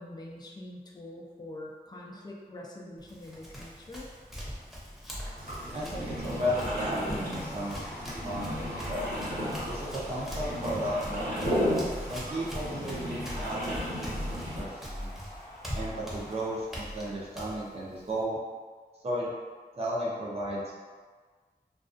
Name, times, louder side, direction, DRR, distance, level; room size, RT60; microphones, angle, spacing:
voice 1, 0.0-4.1, left 1 dB, 25° left, -2 dB, 0.4 m, -44 dB
Run, 3.0-18.2, equal, ahead, 0.7 m, -42 dB
sound 1, 5.4-14.6, equal, 65° right, 1.0 m, -34 dB
voice 2, 5.7-7.8 8.2-9.1 9.7-11.4 12.1-15.1 15.7-18.4 19.0-19.3 19.7-20.8, equal, 40° right, -6 dB, 0.5 m, -34 dB
sound 2, 7.0-16.6, left 1 dB, 80° left, 0.7 m, -47 dB
2.4 x 2.2 x 2.4 m, 1.5 s
wide cardioid pair, 60°, 16 cm